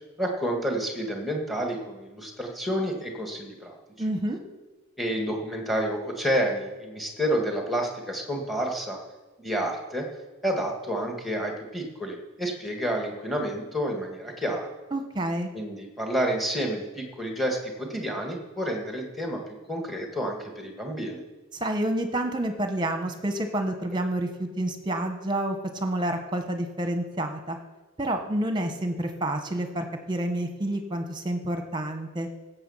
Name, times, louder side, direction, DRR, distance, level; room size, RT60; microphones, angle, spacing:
voice 1, 0.2-3.8 5.0-9.0 9.4-10.1 10.4-14.7 15.5-19.4 19.7-21.2, equal, ahead, 1 dB, 1.8 m, -29 dB
voice 2, 4.0-4.4 14.9-15.5 21.5-27.6 28.0-32.3, right 1 dB, 20° right, 6 dB, 1.2 m, -29 dB
16.0 x 7.1 x 5.7 m, 1.2 s
head